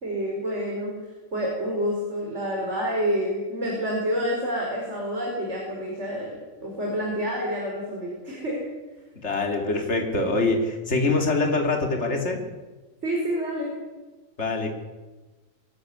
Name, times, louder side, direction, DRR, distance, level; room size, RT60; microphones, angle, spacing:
voice 1, 0.0-0.9 1.3-8.6 13.0-13.7, equal, 60° right, -2 dB, 5.3 m, -28 dB
voice 2, 9.2-12.4 14.4-14.7, left 3 dB, 55° left, 3 dB, 3.0 m, -24 dB
23.5 x 15.0 x 9.7 m, 1.2 s
omnidirectional pair, 1.4 m